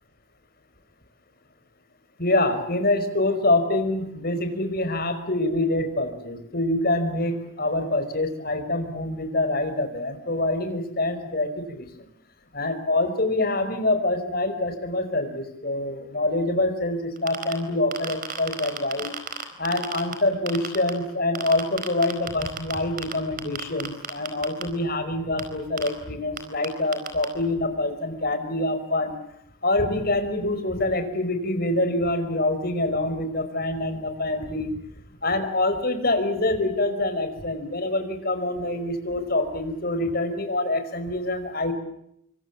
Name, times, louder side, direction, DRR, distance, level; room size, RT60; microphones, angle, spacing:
voice 1, 2.2-11.9 12.5-19.2 19.6-29.1 29.6-34.7 35.2-41.7, left 2 dB, 45° left, 8 dB, 5.1 m, -25 dB
sound 1, 17.2-17.5 17.9-20.1 20.5-20.9 21.4-23.1 23.4-24.6 25.4-25.5 25.8-25.9 26.4-26.5 26.6-26.7 26.9-27.3, right 7 dB, 40° right, 4.5 m, -30 dB
27.0 x 25.5 x 7.4 m, 0.75 s
head